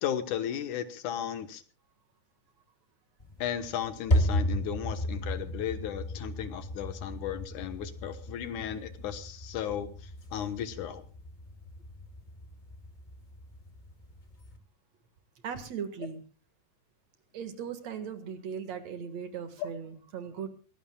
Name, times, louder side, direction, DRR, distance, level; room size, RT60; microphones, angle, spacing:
voice 1, 0.0-1.6 3.4-9.9 10.3-11.0 19.6-19.7, left 9 dB, 75° left, 11 dB, 2.6 m, -35 dB
sound 1, 3.2-14.6, left 1 dB, 15° left, 1.8 m, -34 dB
voice 2, 15.4-16.2 17.3-20.5, right 7 dB, 60° right, 9 dB, 2.8 m, -38 dB
23.5 x 18.0 x 2.3 m, 0.34 s
omnidirectional pair, 3.6 m